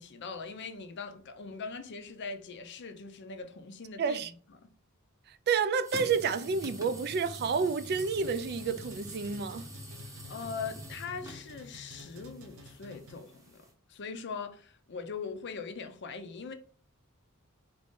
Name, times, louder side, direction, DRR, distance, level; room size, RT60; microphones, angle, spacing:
voice 1, 0.0-4.2 9.9-16.5, left 5 dB, 55° left, 0.6 m, -41 dB
voice 2, 4.0-4.3 5.5-9.7, right 5 dB, 50° right, 0.4 m, -29 dB
sound 1, 5.8-13.7, equal, 15° right, 0.8 m, -46 dB
sound 2, 7.9-13.4, equal, 65° right, 0.8 m, -51 dB
4.2 x 2.6 x 3.6 m
head